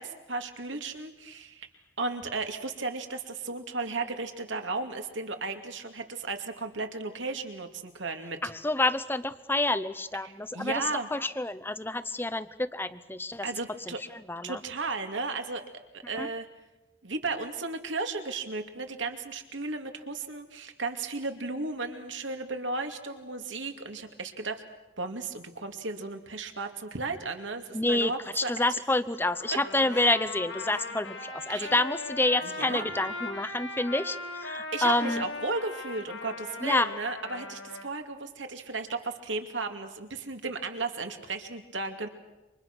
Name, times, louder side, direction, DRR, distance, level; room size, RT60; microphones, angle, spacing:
voice 1, 0.0-1.7 2.0-8.4 10.2-11.1 13.4-14.0 14.4-15.6 15.9-16.5 17.0-24.6 25.0-28.5 31.5-31.7 32.4-32.9 34.7-42.1, right 3 dB, 75° right, 6 dB, 2.5 m, -35 dB
voice 2, 8.4-10.8 11.1-13.5 13.9-14.6 16.2-16.3 27.7-35.2 36.6-36.9, left 2 dB, 10° left, 13 dB, 0.8 m, -28 dB
Trumpet, 29.3-37.9, left 3 dB, 90° left, 5.4 m, -39 dB
28.5 x 25.5 x 6.2 m, 1.0 s
head